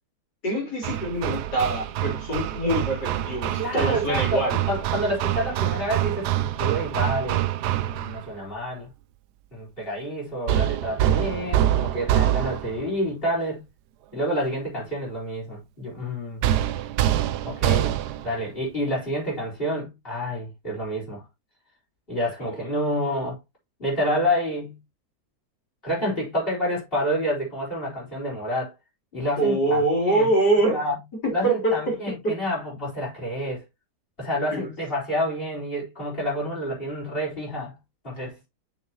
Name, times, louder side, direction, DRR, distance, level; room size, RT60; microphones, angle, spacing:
voice 1, 0.4-4.6 22.4-22.5 29.4-30.8 31.2-32.4 34.5-34.7, right 2 dB, 90° left, 4.3 m, -24 dB
Hammer, 0.8-8.3 10.5-12.9 16.4-18.3, right 12 dB, 85° right, 1.2 m, -25 dB
voice 2, 3.6-4.4 4.7-7.5 7.8-8.9 9.5-13.6 14.1-16.4 17.4-18.0 18.2-21.2 22.1-23.4 23.8-24.8 25.8-28.7 29.1-30.3 30.7-31.0 31.3-33.6 34.2-37.8 38.0-38.4, equal, 35° left, 4.5 m, -28 dB
6.7 x 6.6 x 3.0 m
omnidirectional pair, 1.7 m